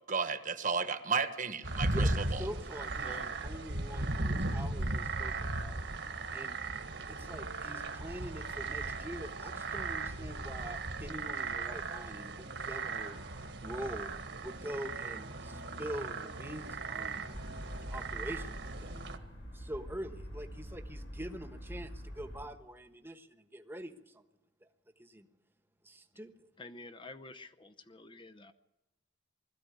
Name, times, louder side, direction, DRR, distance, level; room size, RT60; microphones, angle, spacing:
voice 1, 0.1-2.4, right 5 dB, 45° right, 9 dB, 1.3 m, -33 dB
sound 1, 1.6-19.2, right 2 dB, 65° right, 1.7 m, -37 dB
voice 2, 1.9-5.9 6.3-6.6 7.1-13.2 13.6-14.1 14.4-17.3 17.8-19.0 19.5-24.2 25.0-25.3 25.8-26.5, equal, 10° right, 7 dB, 1.2 m, -44 dB
sound 2, 17.3-22.5, equal, 80° left, 5.5 m, -45 dB
voice 3, 26.6-28.5, left 2 dB, 25° left, 8 dB, 0.7 m, -49 dB
21.0 x 14.0 x 9.6 m, 1.0 s
head